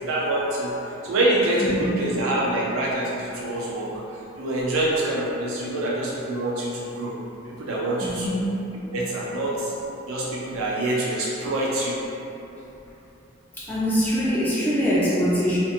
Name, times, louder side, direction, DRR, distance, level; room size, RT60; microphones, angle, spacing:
voice 1, 0.1-0.7 1.0-3.9 4.4-7.1 7.7-8.4 8.9-9.7 10.1-12.0, right 1 dB, 85° right, -5 dB, 0.4 m, -25 dB
voice 2, 8.0-8.5 13.6-15.6, equal, 10° left, -9 dB, 0.5 m, -23 dB
2.6 x 2.6 x 2.4 m, 2.9 s
head